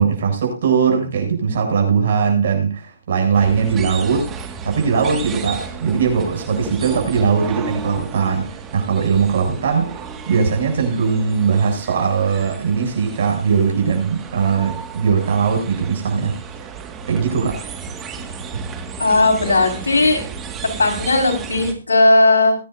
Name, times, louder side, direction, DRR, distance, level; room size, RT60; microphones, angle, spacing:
voice 1, 0.0-4.3 4.6-10.0 10.3-16.3 17.1-17.7, right 6 dB, 55° right, 7.8 m, -19 dB
sound 1, 3.3-21.7, right 5 dB, 15° right, 2.0 m, -33 dB
voice 2, 19.0-20.2 20.8-22.6, left 2 dB, 90° left, 5.4 m, -16 dB
22.5 x 10.0 x 2.7 m
hypercardioid pair, 150°, 0 cm